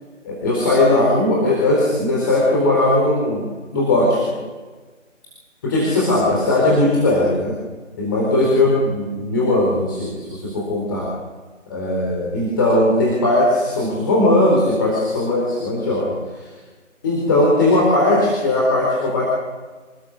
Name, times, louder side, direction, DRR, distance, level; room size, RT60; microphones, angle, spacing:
voice 1, 0.2-3.5 3.7-4.4 5.6-7.5 8.0-11.1 11.7-16.5 17.0-19.2, left 1 dB, 15° left, -5 dB, 4.1 m, -18 dB
27.0 x 19.5 x 7.1 m, 1.3 s
figure-of-eight pair, 165°, 39 cm